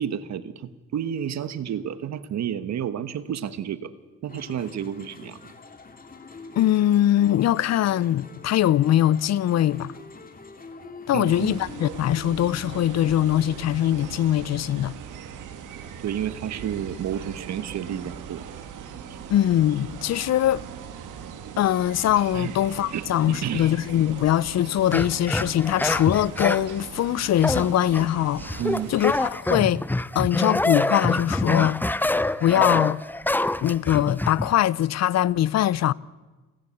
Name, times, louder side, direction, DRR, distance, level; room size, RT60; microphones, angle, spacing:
voice 1, 0.0-3.9 4.2-5.5 11.1-11.6 16.0-18.4 19.1-19.2 22.3-22.5 22.9-23.7 28.6-28.9 32.6-32.8, right 9 dB, 65° right, 1.2 m, -31 dB
sound 1, 4.3-13.6, left 4 dB, 30° left, 2.2 m, -45 dB
voice 2, 6.6-9.9 11.1-14.9 19.3-20.6 21.6-28.6 28.9-29.8 30.1-31.8 32.4-33.0 33.6-35.9, left 12 dB, 60° left, 0.6 m, -22 dB
sound 2, 11.2-29.3, right 8 dB, 85° right, 2.1 m, -40 dB
sound 3, 24.9-26.7 27.4-28.1 28.4-34.5, left 2 dB, 5° left, 0.6 m, -26 dB
29.0 x 10.5 x 8.4 m
cardioid pair, 90°, 30 cm